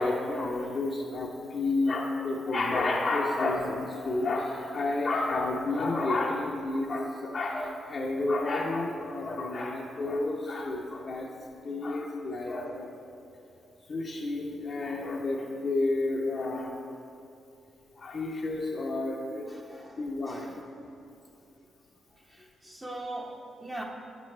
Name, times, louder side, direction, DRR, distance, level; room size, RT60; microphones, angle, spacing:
voice 1, 0.0-11.3 11.6-12.9 13.9-16.9 18.0-19.6 20.0-20.5, left 2 dB, 50° left, -3 dB, 0.7 m, -30 dB
voice 2, 19.5-20.6 22.1-23.8, right 1 dB, 15° right, -1 dB, 0.9 m, -41 dB
8.3 x 6.1 x 3.2 m, 2.7 s
supercardioid pair, 50°, 0 cm